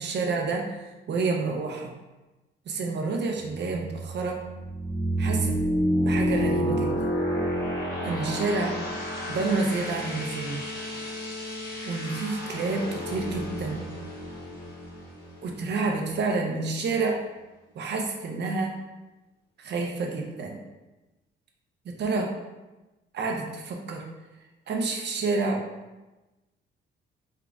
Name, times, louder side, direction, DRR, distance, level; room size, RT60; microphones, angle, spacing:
voice 1, 0.0-1.9 2.7-4.4 5.2-5.5 6.0-6.9 8.0-8.7 9.3-10.6 11.9-13.9 15.4-17.2 17.8-18.7 19.6-20.6 22.0-22.3 23.1-24.0 24.7-25.6, right 3 dB, 60° right, 1 dB, 0.7 m, -29 dB
sound 1, 3.5-16.1, equal, 50° left, 1.2 m, -30 dB
4.5 x 3.8 x 2.4 m, 1.1 s
cardioid pair, 90°, 20 cm